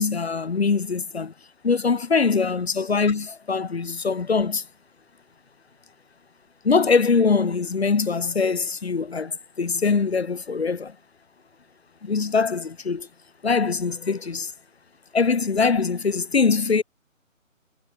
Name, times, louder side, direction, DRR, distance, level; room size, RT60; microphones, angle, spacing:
voice 1, 0.0-1.3 1.6-4.6 6.6-10.9 12.0-13.1 13.4-14.5 15.1-16.8, left 5 dB, 50° left, 2.9 m, -22 dB
figure-of-eight pair, 165°, 40 cm